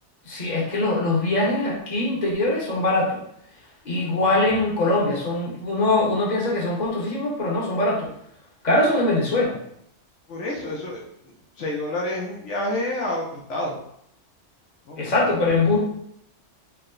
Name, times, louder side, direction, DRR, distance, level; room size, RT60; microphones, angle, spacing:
voice 1, 0.2-3.2 3.8-8.1 8.6-9.6 15.0-15.8, left 2 dB, 40° left, -4 dB, 1.1 m, -22 dB
voice 2, 10.3-11.1 11.6-13.8 14.9-15.4, left 1 dB, 75° left, -2 dB, 1.0 m, -29 dB
4.6 x 2.1 x 3.8 m, 0.72 s
omnidirectional pair, 1.2 m